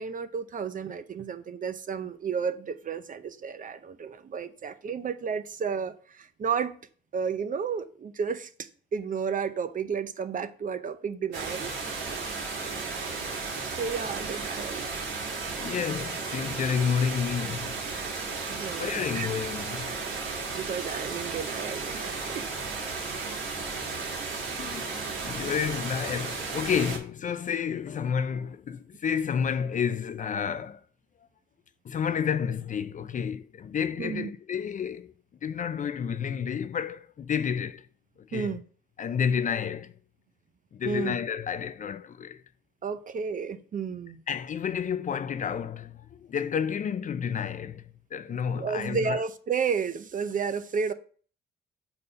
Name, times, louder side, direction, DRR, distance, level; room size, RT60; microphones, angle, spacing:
voice 1, 0.0-6.7 7.1-11.7 13.6-14.9 18.5-19.4 20.5-22.5 34.0-34.3 38.3-38.6 40.8-41.2 42.8-44.2 48.5-50.9, right 6 dB, 40° right, 0.7 m, -32 dB
sound 1, 11.3-27.0, right 4 dB, 80° right, 2.2 m, -34 dB
voice 2, 15.6-17.8 18.8-19.8 24.6-30.8 31.8-35.1 35.4-37.9 38.3-38.6 39.0-39.9 40.7-42.4 44.3-49.2, left 7 dB, 40° left, 0.4 m, -30 dB
5.2 x 4.2 x 5.6 m
cardioid pair, 90°, 20 cm